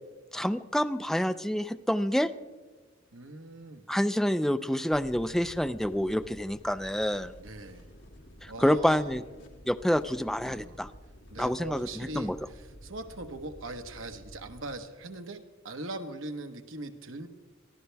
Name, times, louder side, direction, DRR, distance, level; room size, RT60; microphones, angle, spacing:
voice 1, 0.3-2.3 3.9-7.3 8.4-9.2 9.7-10.9 11.4-11.9 12.2-12.4, equal, ahead, 10 dB, 0.4 m, -27 dB
voice 2, 3.1-3.8 7.4-7.9 8.5-9.2 10.5-10.8 11.3-17.3, right 2 dB, 70° right, 6 dB, 1.3 m, -41 dB
sound 1, 4.9-14.7, equal, 60° left, 2.4 m, -51 dB
23.0 x 14.5 x 3.5 m, 1.3 s
head